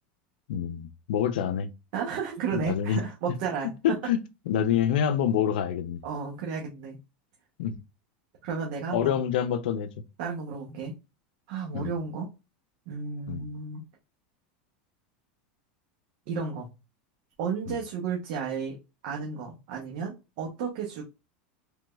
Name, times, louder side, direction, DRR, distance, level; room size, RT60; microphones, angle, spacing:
voice 1, 0.5-1.7 2.5-3.0 3.8-4.2 4.5-6.0 7.6-7.8 8.9-9.9 11.7-11.9 13.3-13.4 17.7-17.8, left 9 dB, 80° left, 0.5 m, -26 dB
voice 2, 1.9-3.7 6.0-7.0 8.4-9.2 10.2-10.9 11.5-12.3 12.9-13.8 16.3-16.7 17.4-18.8 19.0-21.0, right 6 dB, 60° right, 0.8 m, -33 dB
3.4 x 3.0 x 2.2 m
supercardioid pair, 155°, 5 cm